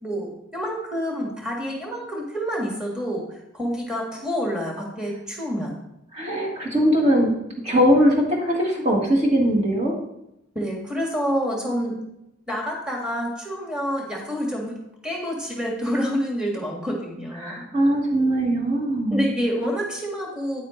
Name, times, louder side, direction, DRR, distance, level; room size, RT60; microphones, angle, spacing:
voice 1, 0.0-3.2 3.5-5.7 10.6-12.0 12.5-14.8 15.0-17.6 19.1-20.7, equal, 5° right, -2 dB, 1.8 m, -28 dB
voice 2, 6.1-7.3 7.6-9.9 17.4-19.3, equal, 35° right, -2 dB, 1.6 m, -20 dB
9.6 x 8.7 x 3.2 m, 0.83 s
head